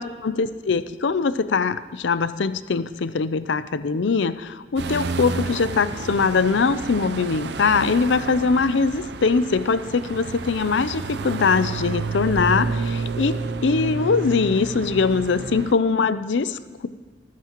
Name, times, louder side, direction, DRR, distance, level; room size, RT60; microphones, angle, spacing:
voice 1, 0.0-13.4 13.6-16.9, left 4 dB, 80° left, 14 dB, 0.5 m, -22 dB
sound 1, 4.8-15.7, right 4 dB, 65° right, 0.5 m, -30 dB
24.5 x 9.5 x 3.0 m, 1.4 s
head